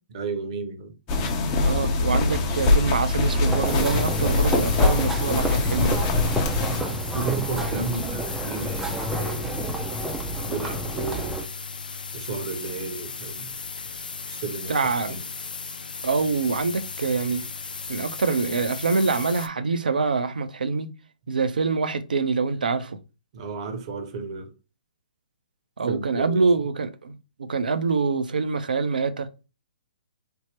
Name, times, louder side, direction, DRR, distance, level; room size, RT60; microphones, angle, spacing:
voice 1, 0.1-1.0 6.7-9.9 10.3-11.4 12.1-13.6 14.3-15.2 23.3-24.5 25.9-26.5, right 4 dB, 45° right, 0.8 m, -33 dB
sound 1, 1.1-6.8, left 3 dB, 30° left, 0.7 m, -23 dB
voice 2, 1.6-6.0 14.7-15.2 16.0-17.4 17.9-20.9 21.3-23.0 25.8-27.2 27.5-29.3, right 4 dB, 75° right, 0.5 m, -25 dB
sound 2, 3.4-11.5, right 1 dB, 5° right, 0.4 m, -29 dB
sound 3, 3.6-19.5, left 5 dB, 75° left, 0.3 m, -36 dB
3.4 x 2.1 x 2.9 m
figure-of-eight pair, 125°, 5 cm